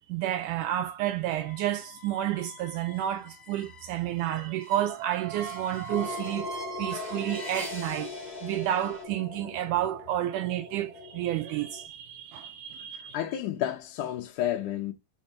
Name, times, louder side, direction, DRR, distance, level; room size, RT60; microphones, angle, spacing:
voice 1, 0.0-8.1 8.4-13.2, right 12 dB, 80° right, 1.9 m, -30 dB
sound 1, 1.3-9.0, right 1 dB, 30° left, 0.8 m, -43 dB
sound 2, 5.9-11.9, left 4 dB, 55° left, 2.0 m, -41 dB
voice 2, 12.9-14.9, left 12 dB, 75° left, 2.2 m, -31 dB
5.4 x 4.2 x 5.1 m
omnidirectional pair, 4.0 m